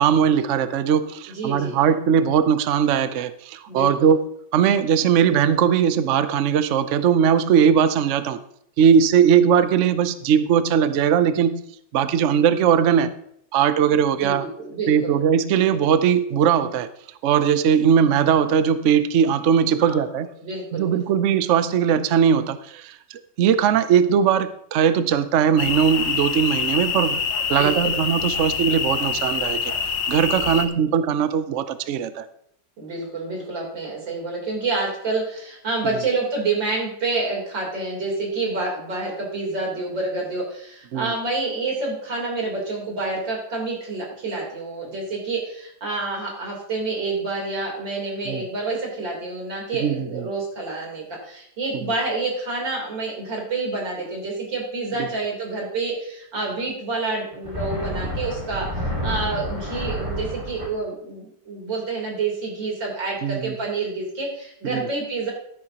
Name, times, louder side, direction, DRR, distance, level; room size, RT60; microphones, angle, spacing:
voice 1, 0.0-4.2 4.5-8.4 8.8-11.6 11.9-13.1 13.5-14.5 14.9-16.9 17.2-20.3 20.7-27.2 27.5-29.7 30.1-32.3 40.9-41.1 48.3-48.4 49.8-50.2 55.0-55.1 63.2-63.6 64.6-64.9, right 8 dB, 65° right, 12 dB, 0.7 m, -19 dB
voice 2, 1.3-1.8 3.7-4.1 14.2-15.1 19.8-20.0 20.4-21.0 27.5-27.9 30.4-30.6 32.8-65.3, right 3 dB, 85° right, -2 dB, 4.3 m, -28 dB
sound 1, 25.6-30.7, left 6 dB, 75° left, 1.7 m, -25 dB
sound 2, 57.3-60.7, equal, 15° right, 2.4 m, -29 dB
12.5 x 11.0 x 2.9 m, 0.71 s
omnidirectional pair, 2.0 m